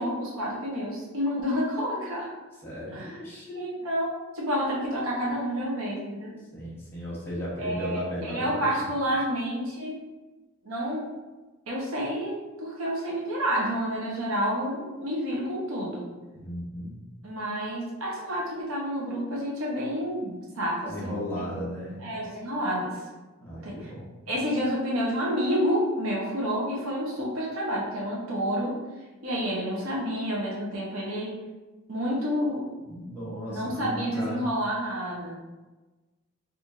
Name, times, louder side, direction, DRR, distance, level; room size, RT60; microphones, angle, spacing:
voice 1, 0.0-2.3 2.9-3.2 3.6-6.4 7.6-10.0 10.6-11.1 11.7-16.1 17.2-21.4 22.0-23.0 23.6-23.9 24.3-28.8 29.2-31.4 31.9-32.7 33.5-35.4, equal, 85° right, -4 dB, 0.8 m, -29 dB
voice 2, 2.6-3.9 6.5-8.9 16.3-17.0 20.9-22.1 23.4-24.3 32.8-34.5, equal, 10° left, -7 dB, 0.8 m, -36 dB
4.3 x 2.5 x 2.5 m, 1.2 s
head